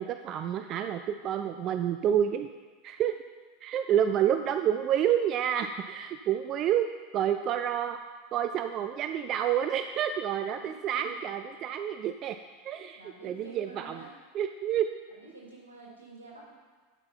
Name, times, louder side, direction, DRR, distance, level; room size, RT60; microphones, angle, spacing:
voice 1, 0.0-2.5 2.8-3.2 3.6-6.9 7.1-8.0 8.3-12.4 12.6-14.0 14.3-14.9, right 9 dB, 45° right, 8 dB, 0.4 m, -29 dB
voice 2, 4.1-4.6 10.4-11.1 12.9-14.1 15.2-16.5, right 3 dB, 85° right, -4 dB, 2.8 m, -49 dB
11.5 x 5.7 x 4.5 m, 1.4 s
hypercardioid pair, 85°, 0 cm